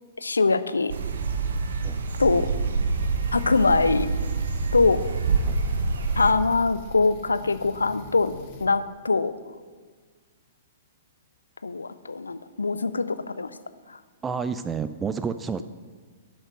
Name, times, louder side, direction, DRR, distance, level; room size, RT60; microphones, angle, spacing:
voice 1, 0.2-0.9 2.2-2.5 3.3-4.1 4.7-5.0 6.2-8.3 8.6-9.3 11.6-13.5 13.9-14.0, left 3 dB, 75° left, 13 dB, 0.5 m, -23 dB
sound 1, 0.9-6.3, right 4 dB, 65° right, 0.9 m, -26 dB
sound 2, 3.0-8.7, left 1 dB, 40° left, 1.8 m, -44 dB
voice 2, 14.2-15.6, right 6 dB, 15° right, 12 dB, 0.4 m, -30 dB
11.5 x 6.3 x 6.4 m, 1.5 s
figure-of-eight pair, 110°, 0 cm